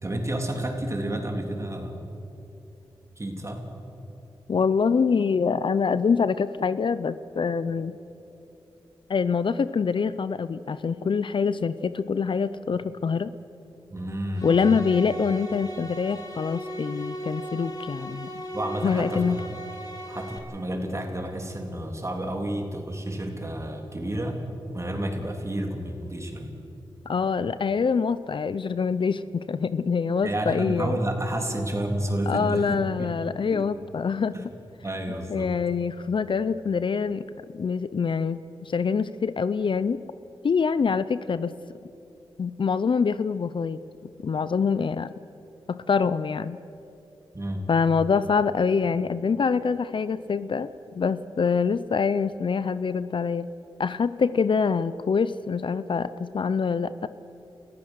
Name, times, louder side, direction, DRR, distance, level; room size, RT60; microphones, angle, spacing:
voice 1, 0.0-2.0 3.2-3.6 13.9-14.5 18.5-19.6 20.1-24.4 24.7-26.6 30.2-33.1 33.5-33.6 34.3-34.4 34.8-35.5 47.3-47.7, right 1 dB, 30° right, 2 dB, 3.3 m, -30 dB
voice 2, 4.5-8.0 9.1-13.3 14.4-18.3 18.8-19.4 27.1-31.0 32.3-34.5 35.3-37.3 37.5-40.0 40.4-41.5 42.4-43.8 44.2-45.1 45.7-46.6 47.7-50.7 50.9-53.5 53.8-57.1, left 5 dB, 60° left, 14 dB, 0.6 m, -25 dB
sound 1, 14.3-20.4, equal, 40° left, 2.8 m, -36 dB
29.5 x 14.5 x 6.4 m, 2.9 s
cardioid pair, 60°, 10 cm